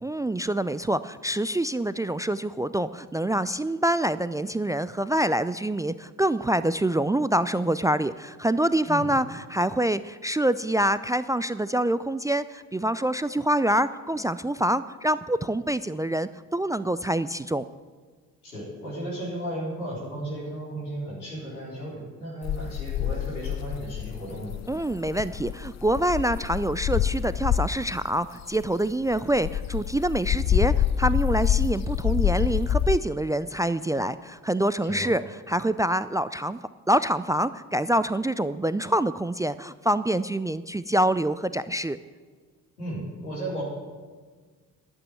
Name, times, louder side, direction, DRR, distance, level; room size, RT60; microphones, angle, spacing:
voice 1, 0.0-17.7 24.7-35.2 35.5-36.6 36.9-42.0, right 1 dB, 10° right, 15 dB, 0.3 m, -26 dB
voice 2, 18.4-24.5 34.8-35.1 42.8-43.6, right 1 dB, 90° left, -6 dB, 4.4 m, -34 dB
sound 1, 22.4-27.9 28.4-33.0, left 10 dB, 40° left, 0.6 m, -26 dB
11.0 x 8.8 x 9.3 m, 1.5 s
figure-of-eight pair, 45°, 43 cm